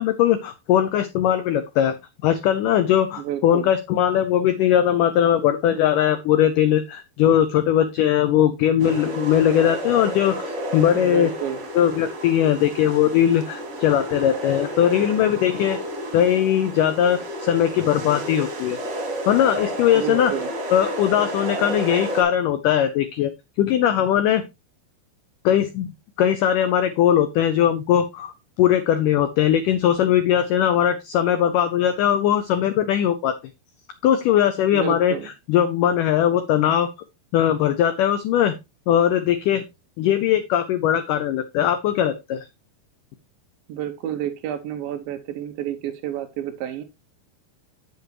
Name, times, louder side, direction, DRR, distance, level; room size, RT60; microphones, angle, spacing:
voice 1, 0.0-2.0 2.2-10.3 10.7-11.3 11.7-15.8 16.1-18.8 19.3-20.3 20.7-23.3 23.6-24.4 25.4-28.3 28.6-33.4 34.0-35.1 35.5-36.9 37.3-38.5 38.9-39.6 40.0-42.5, left 10 dB, 85° left, 10 dB, 1.8 m, -20 dB
voice 2, 3.2-3.7 10.9-11.6 19.9-20.5 34.7-35.3 43.7-46.8, right 11 dB, 80° right, 8 dB, 2.2 m, -30 dB
sound 1, 8.8-22.2, equal, 45° right, 3.2 m, -31 dB
8.2 x 8.1 x 3.0 m, 0.24 s
omnidirectional pair, 4.6 m